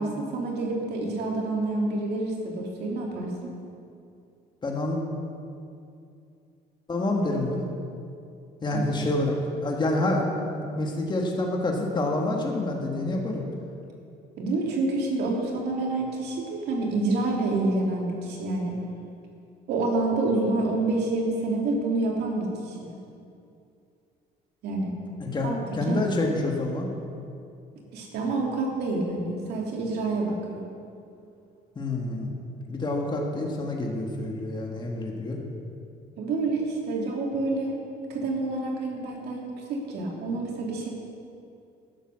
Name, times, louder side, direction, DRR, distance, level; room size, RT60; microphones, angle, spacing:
voice 1, 0.0-3.5 8.7-8.8 14.4-18.8 19.7-22.9 24.6-25.0 25.4-25.6 25.9-26.0 27.9-30.7 36.2-37.8 38.1-40.9, right 2 dB, 75° right, -1 dB, 2.3 m, -28 dB
voice 2, 4.6-5.0 6.9-7.6 8.6-9.3 9.6-13.4 25.2-26.9 31.7-32.3 32.7-35.4, left 2 dB, 25° left, 0 dB, 1.6 m, -27 dB
11.0 x 7.2 x 6.3 m, 2.5 s
cardioid pair, 110°, 17 cm